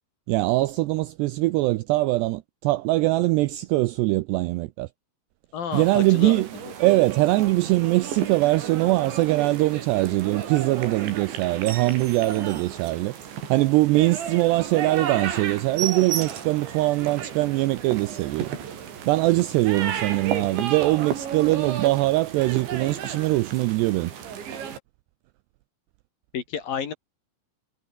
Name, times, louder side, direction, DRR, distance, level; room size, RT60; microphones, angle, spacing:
voice 1, 0.3-4.9 5.7-6.5 6.8-18.5 19.1-24.1, right 19 dB, 90° right, 2.4 m, -22 dB
voice 2, 5.5-6.4 26.3-26.9, left 7 dB, 50° left, 3.8 m, -30 dB
sound 1, 5.7-24.8, right 8 dB, 70° right, 5.8 m, -34 dB
sound 2, 11.5-13.6 14.1-14.2 14.6-14.7 15.0-15.1 15.4-16.7 17.2-17.3 17.6-17.7 17.9-18.5 19.2-19.4, right 8 dB, 50° right, 2.1 m, -35 dB
omnidirectional pair, 5.6 m